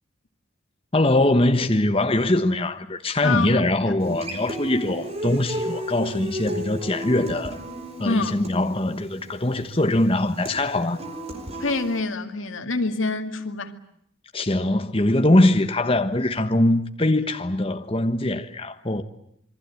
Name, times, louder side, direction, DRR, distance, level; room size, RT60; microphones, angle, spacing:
voice 1, 0.9-7.6 8.0-11.0 14.3-19.0, left 1 dB, 30° left, 1.2 m, -22 dB
voice 2, 3.2-3.7 8.0-8.4 11.6-13.7, left 3 dB, 85° left, 2.3 m, -26 dB
Human voice / Acoustic guitar, 4.0-12.0, equal, 30° right, 4.7 m, -34 dB
27.5 x 23.5 x 8.4 m
head